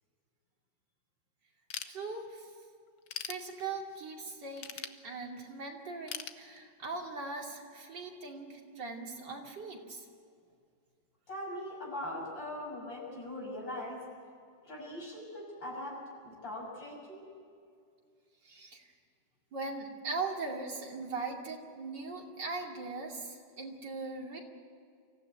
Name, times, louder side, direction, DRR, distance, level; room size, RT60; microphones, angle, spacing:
Ratchet pawl / Tools, 1.7-2.5 2.9-4.0 4.6-5.5 6.1-7.1, left 8 dB, 60° left, 1.3 m, -42 dB
voice 1, 1.8-2.5 3.2-10.0 18.4-18.8 19.5-24.4, right 3 dB, 65° right, 0 dB, 3.3 m, -40 dB
voice 2, 11.3-14.0 14.6-17.2, left 1 dB, 75° left, -2 dB, 7.1 m, -41 dB
25.0 x 15.5 x 9.4 m, 2.3 s
omnidirectional pair, 2.0 m